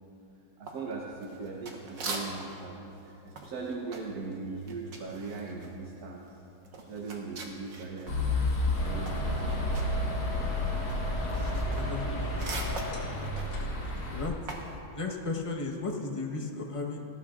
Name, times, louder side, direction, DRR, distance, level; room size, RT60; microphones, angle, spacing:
voice 1, 0.6-6.2 6.7-9.5, right 4 dB, 60° right, -1 dB, 1.4 m, -39 dB
sound 1, 0.7-2.7 2.9-8.2 8.5-14.8, right 3 dB, 80° right, 2.0 m, -42 dB
sound 2, 8.1-14.3, left 2 dB, 55° left, 1.9 m, -31 dB
sound 3, 8.7-13.8, equal, 85° left, 2.6 m, -37 dB
voice 2, 11.7-12.7 13.6-14.3 14.9-17.0, left 3 dB, 25° left, 0 dB, 0.9 m, -36 dB
19.5 x 15.0 x 2.5 m, 2.9 s
omnidirectional pair, 2.0 m